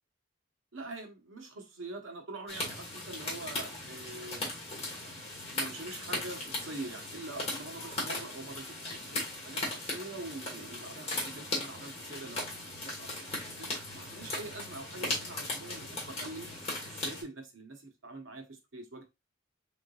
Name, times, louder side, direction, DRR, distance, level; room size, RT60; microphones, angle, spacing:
voice 1, 0.7-4.5 5.5-16.5 16.8-19.1, right 2 dB, 70° right, 1.1 m, -44 dB
sound 1, 2.5-17.2, left 2 dB, 30° left, 1.6 m, -38 dB
3.8 x 3.6 x 2.4 m
head